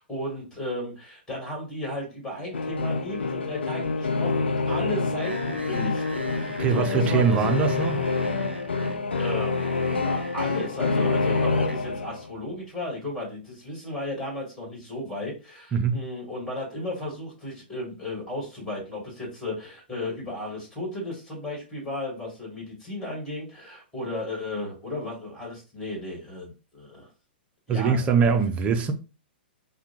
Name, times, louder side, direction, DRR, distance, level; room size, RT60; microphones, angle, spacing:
voice 1, 0.0-7.4 9.2-27.1 27.7-28.4, left 1 dB, 5° left, 1.8 m, -34 dB
sound 1, 2.5-12.4, left 4 dB, 80° left, 0.5 m, -27 dB
sound 2, 5.2-11.8, right 3 dB, 90° right, 0.5 m, -42 dB
voice 2, 6.6-8.0 15.7-16.0 27.7-28.9, right 5 dB, 20° right, 0.5 m, -22 dB
3.5 x 2.2 x 2.9 m
figure-of-eight pair, 115°, 6 cm